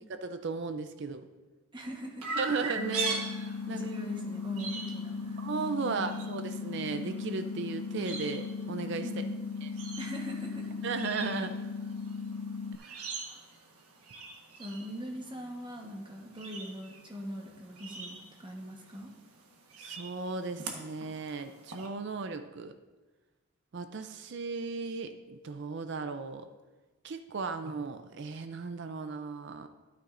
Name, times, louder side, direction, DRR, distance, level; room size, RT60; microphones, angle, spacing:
voice 1, 0.2-1.3 2.3-3.2 3.7-3.8 5.4-9.1 9.6-9.7 10.8-11.6 12.8-13.1 19.8-22.7 23.7-26.5 27.0-29.7, right 4 dB, 50° right, 9 dB, 0.4 m, -36 dB
voice 2, 1.7-2.4 3.7-5.4 5.8-6.0 9.0-9.4 10.0-10.8 14.6-19.1, equal, 20° right, 1 dB, 1.1 m, -41 dB
Chirp tweet, 2.2-21.9, right 4 dB, 85° right, 1.3 m, -43 dB
sound 1, 2.8-12.8, left 5 dB, 75° left, 0.3 m, -38 dB
12.0 x 9.2 x 2.5 m, 1.2 s
head